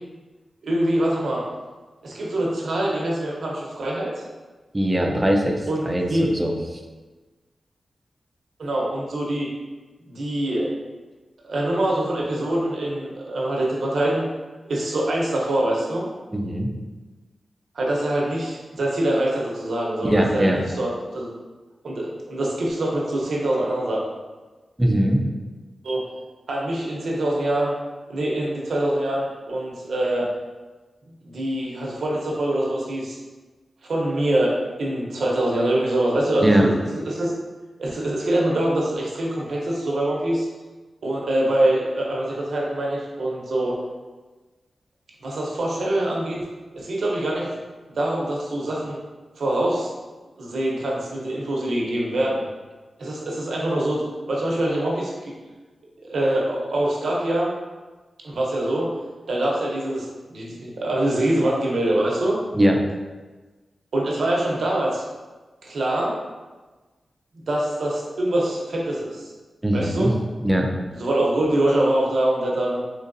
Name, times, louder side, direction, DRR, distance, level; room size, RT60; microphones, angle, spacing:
voice 1, 0.6-1.4 2.0-4.2 5.7-6.2 8.6-9.5 10.1-10.7 11.4-14.3 14.7-16.1 17.7-21.3 21.8-24.0 25.8-26.0 26.5-27.7 28.1-30.3 31.2-33.2 33.9-37.3 37.8-40.5 41.0-43.8 45.2-46.4 46.7-47.5 47.9-49.0 49.4-49.9 50.4-52.4 53.0-55.3 56.0-57.5 58.2-58.9 59.3-62.4 63.9-65.0 65.6-66.1 67.3-69.3 69.7-70.1 70.9-72.8, right 1 dB, 75° right, -3 dB, 0.8 m, -24 dB
voice 2, 4.7-6.8 16.3-16.7 20.0-20.6 24.8-25.2 36.4-36.7 62.5-62.8 69.6-70.1 70.4-70.7, right 1 dB, 15° right, 2 dB, 0.4 m, -21 dB
3.9 x 3.1 x 2.6 m, 1.3 s
wide cardioid pair, 105°, 0 cm